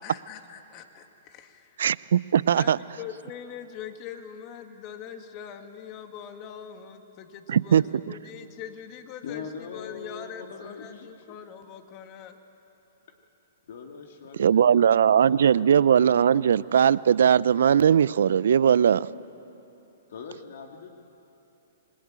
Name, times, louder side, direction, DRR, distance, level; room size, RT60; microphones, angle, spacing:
voice 1, 0.0-1.7 2.6-12.4, left 8 dB, 35° left, 6 dB, 2.1 m, -42 dB
voice 2, 1.8-2.8 7.5-8.1 14.4-19.1, right 8 dB, 70° right, 19 dB, 0.5 m, -20 dB
voice 3, 9.2-11.4 13.7-15.7 16.0-16.6 20.1-21.0, left 6 dB, 65° left, 3 dB, 2.2 m, -42 dB
26.5 x 21.0 x 8.9 m, 2.9 s
hypercardioid pair, 130°, 0 cm